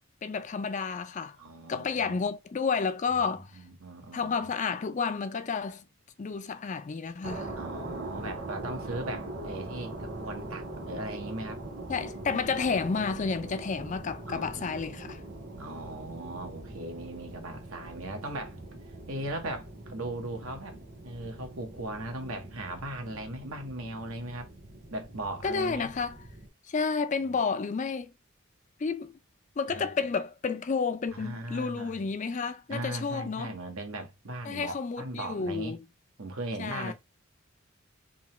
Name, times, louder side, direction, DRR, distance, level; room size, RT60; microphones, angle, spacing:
voice 1, 0.2-1.4 1.7-3.6 4.1-5.8 6.2-7.5 11.9-15.2 25.4-26.2 26.7-28.1 28.8-29.1 29.6-33.5 34.4-35.8 36.6-36.9, left 5 dB, 35° left, 0.4 m, -31 dB
voice 2, 1.4-2.2 3.5-4.4 7.6-11.6 14.3-14.9 15.6-18.6 19.1-20.8 21.0-24.5 24.9-25.9 27.2-27.4 29.7-29.9 31.1-32.0 32.7-35.8 36.2-36.9, right 1 dB, 85° right, 1.2 m, -38 dB
sound 1, 7.2-26.5, right 2 dB, 60° right, 1.8 m, -42 dB
3.7 x 2.9 x 3.1 m
head